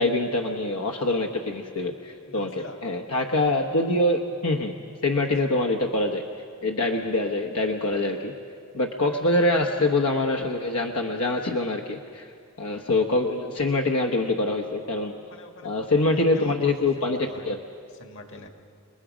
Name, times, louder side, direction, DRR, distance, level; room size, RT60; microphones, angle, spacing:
voice 1, 0.0-4.8 5.0-6.2 6.6-8.3 8.7-12.3 12.6-15.1 15.6-17.6, left 2 dB, 85° left, 3 dB, 1.1 m, -25 dB
voice 2, 2.2-2.8 15.0-17.5 18.0-18.5, left 2 dB, 60° left, 4 dB, 1.9 m, -45 dB
29.5 x 20.0 x 5.1 m, 2.4 s
head